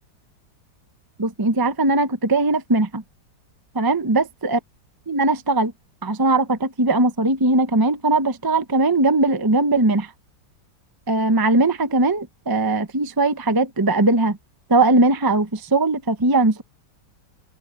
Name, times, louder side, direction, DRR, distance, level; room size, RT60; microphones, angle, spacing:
voice 1, 1.2-3.0 3.8-4.6 5.1-5.7 6.0-10.1 11.1-14.4 14.7-16.6, right 2 dB, 25° right, 0.4 m, -19 dB
omnidirectional pair, 2.0 m